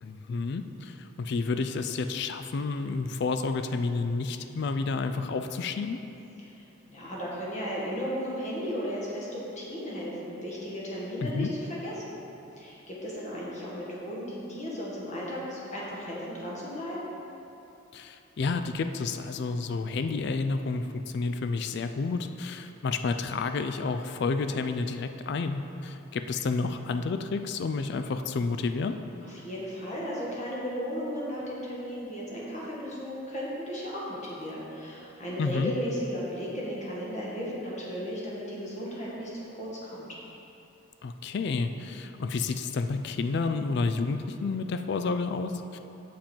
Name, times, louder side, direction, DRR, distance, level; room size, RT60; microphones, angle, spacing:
voice 1, 0.0-6.0 11.2-11.5 17.9-29.0 35.4-35.7 41.0-45.8, left 4 dB, 55° left, 8 dB, 0.3 m, -30 dB
voice 2, 6.9-12.2 12.6-17.0 29.2-40.1, equal, 35° left, -6 dB, 1.7 m, -35 dB
7.5 x 7.2 x 4.4 m, 2.9 s
head